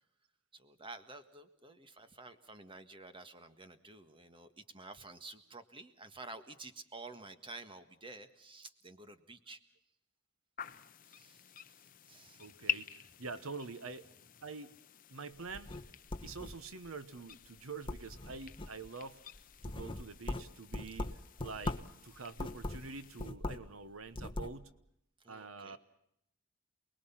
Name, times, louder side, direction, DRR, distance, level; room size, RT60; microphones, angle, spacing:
voice 1, 0.5-9.6 11.0-12.5 21.5-21.7 25.2-25.8, right 3 dB, 25° right, 9 dB, 1.6 m, -51 dB
sound 1, 10.6-23.3, left 7 dB, 40° left, 0.8 m, -47 dB
voice 2, 12.4-12.9 13.2-14.1 14.4-14.8 15.1-15.7 16.2-19.2 19.6-24.7 25.3-25.8, right 4 dB, 80° right, 13 dB, 1.1 m, -46 dB
sound 2, 15.4-16.9 17.3-17.6 17.8-18.9 19.3-22.0 22.3-23.7 24.0-24.6, left 2 dB, 25° left, 1.2 m, -41 dB
29.0 x 21.0 x 5.8 m, 0.78 s
head